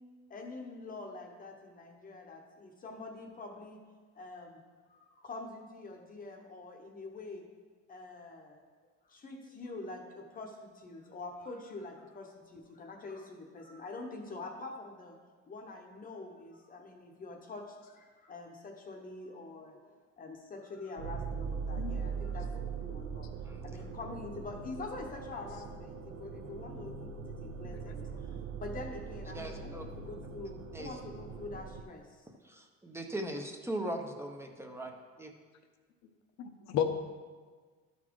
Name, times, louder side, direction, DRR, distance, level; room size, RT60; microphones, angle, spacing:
voice 1, 0.3-3.8 4.1-4.6 4.9-7.4 7.9-8.6 9.1-15.1 15.5-19.9 20.2-23.3 23.6-32.3, left 3 dB, 30° left, 2 dB, 0.9 m, -45 dB
sound 1, 21.0-31.8, right 5 dB, 50° right, 0.7 m, -41 dB
voice 2, 21.8-22.3 27.6-27.8 36.4-36.8, left 10 dB, 65° left, 7 dB, 0.8 m, -34 dB
voice 3, 29.3-29.8 30.7-31.0 32.4-34.9 35.2-35.3, right 1 dB, 10° right, 3 dB, 0.6 m, -39 dB
12.5 x 4.2 x 4.6 m, 1.5 s
cardioid pair, 150°, 30 cm